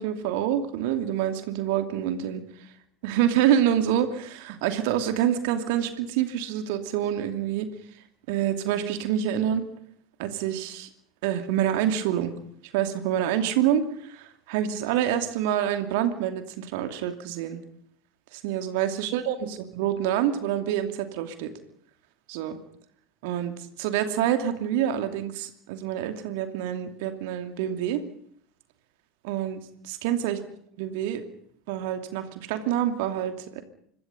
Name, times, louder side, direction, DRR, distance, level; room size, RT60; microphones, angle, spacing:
voice 1, 0.0-2.4 3.0-7.7 8.3-9.6 10.2-10.9 11.2-12.3 12.7-17.6 18.3-21.5 22.3-22.6 23.2-28.0 29.2-30.4 30.8-31.2 31.7-33.6, right 10 dB, 55° right, 8 dB, 2.7 m, -27 dB
26.0 x 22.0 x 5.5 m, 0.64 s
figure-of-eight pair, 75°, 0 cm